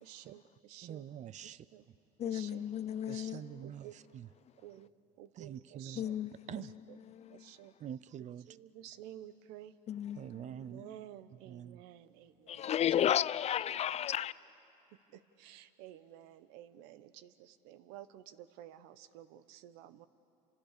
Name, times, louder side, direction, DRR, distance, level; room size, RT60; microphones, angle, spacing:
voice 1, 0.0-1.1 1.4-1.9 2.2-2.7 3.0-4.0 4.6-4.9 5.2-6.2 6.5-7.0 7.3-7.7 8.5-9.7 10.4-12.7 15.1-20.1, right 12 dB, 80° right, 1.0 m, -52 dB
voice 2, 0.8-1.7 3.1-4.3 5.3-6.7 7.8-8.6 10.2-10.8 11.5-11.8, right 10 dB, 45° right, 0.6 m, -46 dB
voice 3, 2.2-3.6 6.0-6.6 7.1-7.4 9.9-10.4 12.5-14.3, left 10 dB, 40° left, 0.6 m, -33 dB
29.0 x 26.5 x 6.7 m
supercardioid pair, 95°, 17 cm